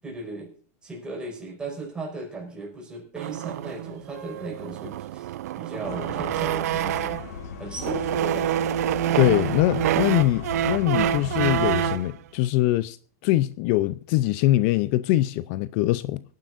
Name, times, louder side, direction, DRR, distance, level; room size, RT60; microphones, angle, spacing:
voice 1, 0.0-0.5 0.8-7.2 7.6-8.6, right 3 dB, 10° right, 5.5 m, -36 dB
sound 1, 3.2-7.4 7.8-12.1, right 11 dB, 75° right, 0.6 m, -27 dB
sound 2, 5.8-12.0, left 5 dB, 85° left, 1.5 m, -36 dB
voice 2, 9.2-13.0 13.2-16.2, left 16 dB, 50° left, 0.5 m, -23 dB
24.5 x 10.5 x 2.6 m
supercardioid pair, 145°, 9 cm